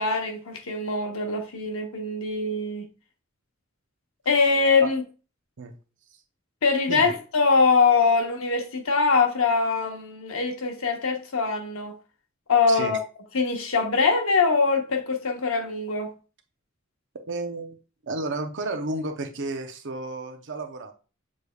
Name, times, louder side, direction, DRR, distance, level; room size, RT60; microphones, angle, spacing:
voice 1, 0.0-2.8 4.3-5.0 6.6-11.9 12.5-13.0 13.3-16.1, left 4 dB, 75° left, 0.9 m, -23 dB
voice 2, 12.7-13.0 17.3-17.8 18.0-20.9, right 2 dB, 60° right, 0.7 m, -32 dB
6.5 x 3.3 x 2.3 m
head